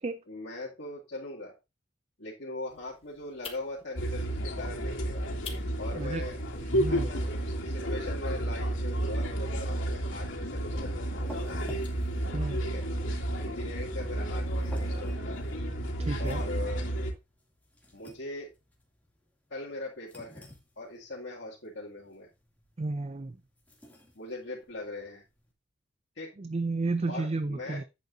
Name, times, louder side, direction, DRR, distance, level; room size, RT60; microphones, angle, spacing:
voice 1, 0.3-1.5 2.2-5.2 5.8-6.4 6.9-11.6 12.6-12.8 13.4-15.4 16.2-16.9 17.9-18.5 19.5-20.5 20.8-22.3 24.2-25.2 26.2-26.3 27.1-27.8, left 2 dB, 60° left, 2.4 m, -40 dB
sound 1, 2.7-8.0, left 6 dB, 30° left, 1.7 m, -50 dB
sound 2, 3.9-17.1, right 1 dB, 85° left, 2.6 m, -31 dB
voice 2, 6.0-6.3 6.7-7.1 12.3-12.6 16.0-16.4 22.8-23.4 26.4-27.8, right 3 dB, 30° right, 0.4 m, -32 dB
sound 3, 10.5-25.5, left 1 dB, 10° left, 2.4 m, -53 dB
10.5 x 8.3 x 2.6 m
head